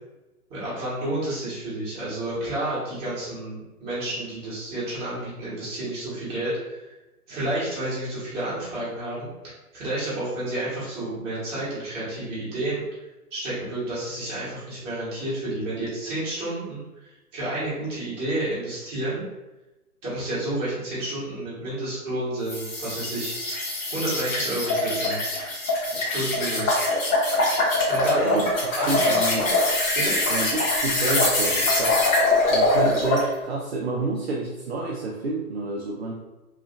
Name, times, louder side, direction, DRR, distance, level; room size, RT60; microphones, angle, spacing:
voice 1, 0.5-6.8 7.3-12.8 13.3-19.2 20.0-23.3 23.9-25.2 26.1-26.8 27.9-28.5 28.8-29.6 29.9-30.2, right 1 dB, 15° right, -11 dB, 1.0 m, -30 dB
sound 1, 22.5-33.3, left 2 dB, 60° left, 1.3 m, -23 dB
voice 2, 28.9-29.5 30.3-32.0 32.5-36.1, right 3 dB, 45° right, -3 dB, 0.4 m, -29 dB
3.0 x 2.4 x 2.4 m, 1.0 s
hypercardioid pair, 140°, 46 cm